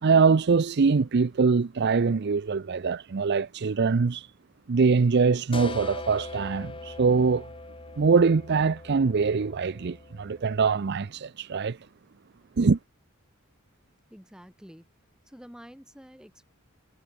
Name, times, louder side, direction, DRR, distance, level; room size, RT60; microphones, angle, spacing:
voice 1, 0.0-4.3 4.7-7.5 8.0-11.8 12.6-12.8, right 5 dB, 50° right, 0.5 m, -23 dB
sound 1, 5.5-11.0, left 2 dB, 25° left, 2.0 m, -41 dB
voice 2, 14.1-14.8 15.3-16.4, equal, 5° right, 2.9 m, -48 dB
head